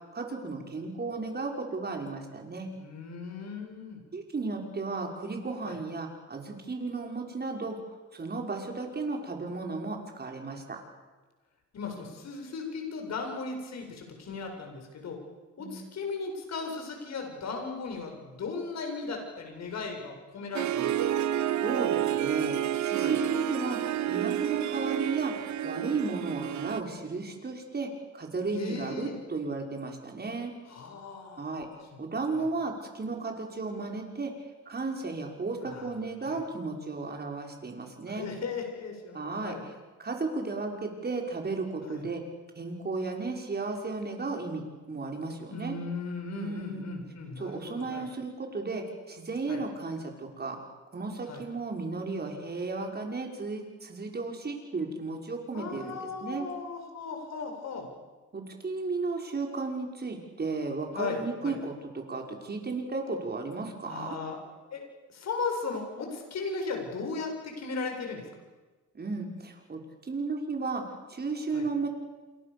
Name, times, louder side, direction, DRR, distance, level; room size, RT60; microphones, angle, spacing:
voice 1, 0.1-2.7 4.1-7.8 8.1-10.8 15.6-15.8 21.6-22.5 22.8-25.3 25.6-30.5 31.4-31.7 32.0-34.3 34.7-38.3 39.1-39.6 40.0-42.2 42.6-45.8 46.4-46.9 47.4-50.6 50.9-56.5 58.3-64.1 68.9-69.8 70.1-71.9, right 3 dB, 35° right, 2 dB, 5.9 m, -34 dB
voice 2, 2.7-4.0 5.6-5.8 11.7-15.2 15.6-21.0 23.0-23.1 28.5-29.2 30.7-31.6 31.9-32.0 32.3-32.5 35.6-35.9 36.2-36.4 38.1-39.6 41.8-42.1 45.5-48.1 49.5-49.6 51.3-51.4 55.5-57.9 60.9-61.5 63.8-64.4 64.7-68.3 71.5-71.7, left 4 dB, 60° left, 3 dB, 7.7 m, -37 dB
Harp, 20.5-26.8, right 11 dB, 70° right, 1.2 m, -29 dB
29.0 x 27.5 x 7.2 m, 1.3 s
cardioid pair, 90°, 30 cm